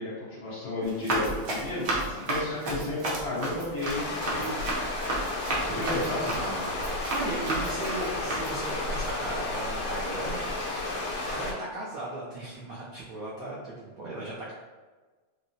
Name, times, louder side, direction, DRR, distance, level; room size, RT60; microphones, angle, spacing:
voice 1, 0.0-4.6 5.5-6.3, left 2 dB, 55° left, -8 dB, 1.4 m, -33 dB
Run, 0.8-8.7, right 1 dB, 60° right, 0.9 m, -33 dB
sound 1, 3.9-11.5, left 2 dB, 90° left, 1.6 m, -32 dB
voice 2, 5.7-10.8 11.2-14.5, right 2 dB, 90° right, -6 dB, 0.7 m, -37 dB
4.5 x 2.0 x 2.7 m, 1.3 s
omnidirectional pair, 2.3 m